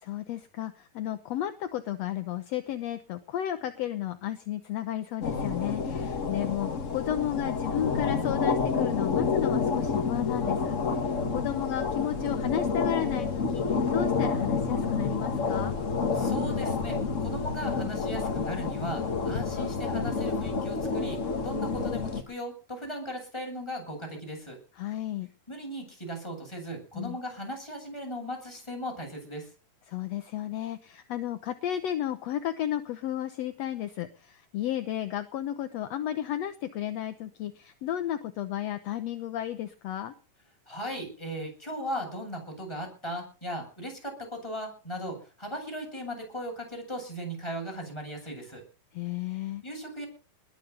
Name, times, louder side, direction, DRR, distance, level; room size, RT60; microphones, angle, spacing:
voice 1, 0.0-15.8 24.8-25.3 26.9-27.2 29.9-40.1 48.9-49.6, left 12 dB, 65° left, 9 dB, 1.7 m, -33 dB
sound 1, 5.2-22.2, left 5 dB, 80° left, 0.6 m, -29 dB
voice 2, 16.1-24.6 25.5-29.5 40.7-48.6 49.6-50.1, equal, 5° left, 1 dB, 7.8 m, -37 dB
20.5 x 9.1 x 6.8 m, 0.37 s
omnidirectional pair, 4.0 m